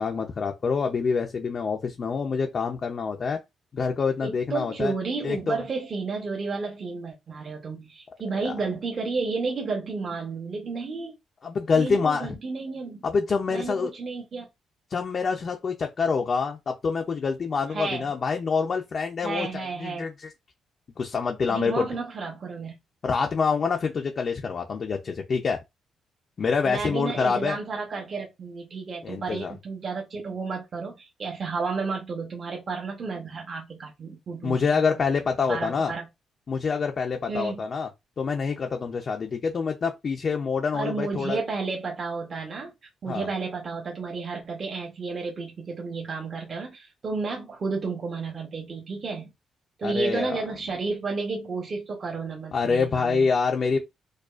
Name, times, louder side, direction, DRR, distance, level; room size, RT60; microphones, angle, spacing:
voice 1, 0.0-3.4 3.7-4.9 5.2-5.6 8.3-8.5 11.4-12.3 13.0-13.9 14.9-20.3 21.0-21.9 23.0-25.6 26.4-27.6 29.0-29.5 34.4-35.9 36.5-37.9 38.2-41.4 43.1-43.3 49.8-50.4 52.5-53.8, left 5 dB, 35° left, 0.5 m, -26 dB
voice 2, 4.2-11.2 11.7-13.0 13.5-14.5 17.7-18.1 19.2-20.1 21.5-22.8 26.6-34.8 35.5-36.1 37.3-37.6 40.7-42.7 43.0-49.3 49.8-53.3, right 4 dB, 35° right, 0.9 m, -32 dB
4.8 x 2.3 x 2.4 m
cardioid pair, 155°, 0 cm